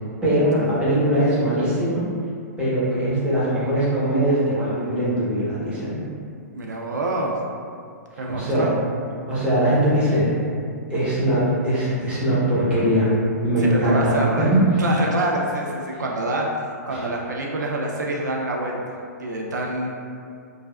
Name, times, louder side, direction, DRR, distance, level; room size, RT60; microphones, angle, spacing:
voice 1, 0.2-2.0 2.6-6.0 8.1-8.7 9.3-10.3 10.9-13.1 13.4-14.7 16.9-17.0, right 1 dB, 10° right, -10 dB, 1.0 m, -21 dB
voice 2, 6.5-7.3 8.2-8.8 13.6-14.5 14.8-16.5 16.9-19.9, right 2 dB, 85° right, -1 dB, 0.4 m, -26 dB
3.1 x 2.4 x 2.3 m, 2.4 s
hypercardioid pair, 125°, 9 cm